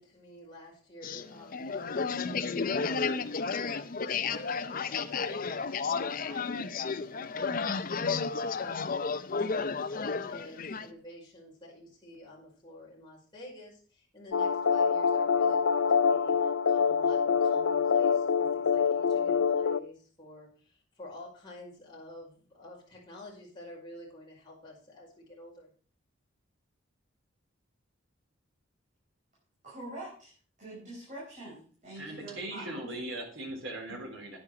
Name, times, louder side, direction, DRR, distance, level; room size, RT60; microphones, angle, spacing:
voice 1, 0.0-5.5 5.8-25.7, left 1 dB, 20° left, -5 dB, 5.3 m, -49 dB
sound 1, 1.0-10.9, left 5 dB, 45° left, 0.6 m, -32 dB
sound 2, 14.3-19.8, left 6 dB, 90° left, 0.5 m, -25 dB
voice 2, 29.6-30.3 30.6-32.9, right 1 dB, 40° right, -6 dB, 4.9 m, -44 dB
voice 3, 31.9-34.4, right 1 dB, 75° right, 0 dB, 3.8 m, -39 dB
9.9 x 9.7 x 4.8 m, 0.42 s
head